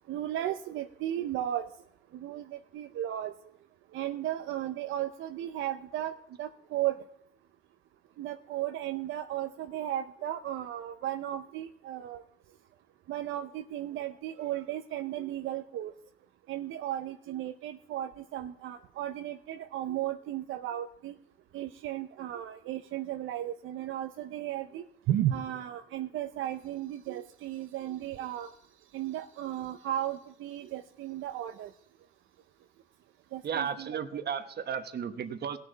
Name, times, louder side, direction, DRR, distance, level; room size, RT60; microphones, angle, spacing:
voice 1, 0.1-1.7 2.1-3.3 3.9-7.0 8.2-12.2 13.1-15.9 16.5-21.1 21.5-28.5 28.9-31.7 33.3-34.0, right 12 dB, 85° right, 7 dB, 0.6 m, -35 dB
voice 2, 33.4-35.6, right 7 dB, 55° right, 9 dB, 1.1 m, -34 dB
18.0 x 6.8 x 4.0 m, 0.72 s
cardioid pair, 90°, 20 cm